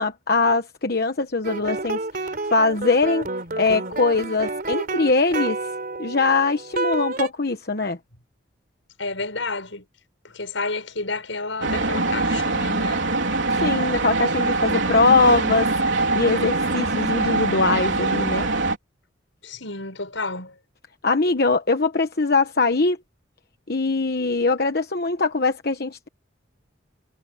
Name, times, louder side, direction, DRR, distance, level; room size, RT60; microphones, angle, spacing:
voice 1, 0.0-3.3 3.6-5.6 6.0-8.0 13.5-18.5 21.0-23.0 23.7-26.1, left 3 dB, 55° left, 1.1 m, -22 dB
sound 1, 1.4-7.3, right 2 dB, 50° right, 3.5 m, -29 dB
voice 2, 9.0-9.8 10.2-13.0 19.4-20.6, left 3 dB, 80° left, 6.4 m, -30 dB
sound 2, 11.6-18.8, right 3 dB, 75° right, 3.7 m, -23 dB
head